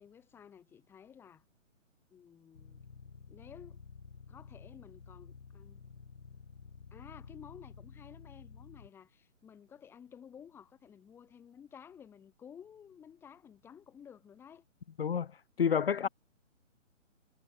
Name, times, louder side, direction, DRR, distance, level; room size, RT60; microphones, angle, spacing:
voice 1, 0.0-1.4 2.1-2.8 3.3-3.8 4.3-5.8 6.9-14.6 15.9-16.1, left 8 dB, 5° left, 3.6 m, -54 dB
sound 1, 2.5-8.9, left 5 dB, 70° left, 7.4 m, -52 dB
voice 2, 15.6-16.1, left 7 dB, 50° left, 0.6 m, -28 dB
hypercardioid pair, 175°, 39 cm